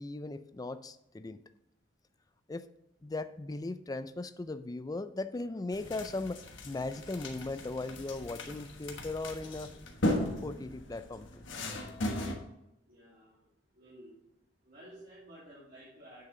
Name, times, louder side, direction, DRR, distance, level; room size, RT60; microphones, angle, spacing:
voice 1, 0.0-1.4 2.5-2.6 3.0-9.7 10.4-11.4, left 2 dB, 20° left, 12 dB, 0.4 m, -38 dB
sound 1, 5.7-12.4, left 1 dB, 90° left, 1.3 m, -37 dB
voice 2, 12.8-13.5 13.7-14.1 14.6-16.2, right 1 dB, 55° right, -9 dB, 2.6 m, -53 dB
8.6 x 6.6 x 3.8 m, 0.87 s
head